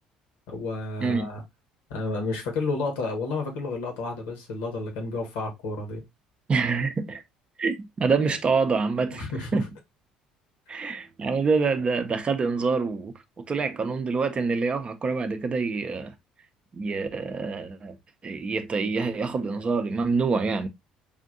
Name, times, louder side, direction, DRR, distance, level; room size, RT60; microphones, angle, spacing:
voice 1, 0.5-1.4 1.9-6.0 9.1-9.7 10.7-10.8, left 3 dB, 65° left, 1.1 m, -31 dB
voice 2, 1.0-1.3 6.5-7.2 7.6-9.7 10.7-16.1 16.7-18.0 18.2-20.7, right 4 dB, 30° right, 0.6 m, -26 dB
5.0 x 2.6 x 2.5 m
figure-of-eight pair, 55°, 3 cm